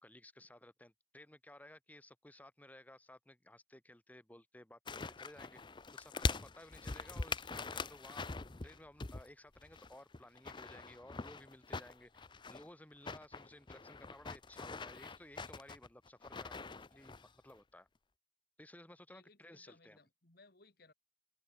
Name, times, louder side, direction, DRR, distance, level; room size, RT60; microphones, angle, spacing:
voice 1, 0.0-5.6 5.9-8.2 8.6-17.9 18.6-20.0, left 1 dB, 10° left, 1.2 m, -57 dB
sound 1, 4.9-9.3 9.6-12.7 13.0-17.3 17.5-17.6, left 3 dB, 25° left, 0.6 m, -43 dB
voice 2, 19.1-20.9, left 3 dB, 60° left, 2.8 m, -64 dB
open air
head